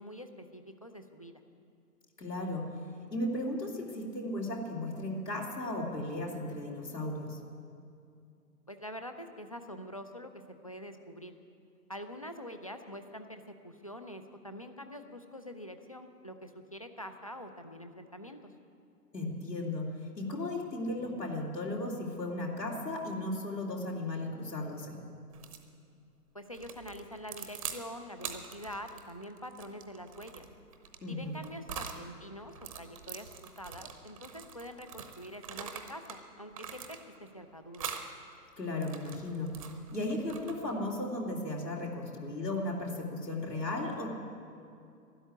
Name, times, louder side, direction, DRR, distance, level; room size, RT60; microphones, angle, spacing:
voice 1, 0.0-1.4 8.7-11.3 11.9-18.5 26.3-30.5 31.1-37.9, equal, 25° left, 7 dB, 0.4 m, -45 dB
voice 2, 2.2-2.7 3.1-7.4 19.1-19.9 20.2-25.0 31.0-31.3 38.6-39.5 39.9-44.1, left 1 dB, 80° left, -1 dB, 3.0 m, -35 dB
sound 1, 25.3-25.7 26.5-27.8 28.2-32.0 32.5-36.2 36.5-37.3 37.7-38.1 38.6-40.8, right 7 dB, 20° right, 0.8 m, -44 dB
12.5 x 11.0 x 9.8 m, 2.5 s
figure-of-eight pair, 130°, 48 cm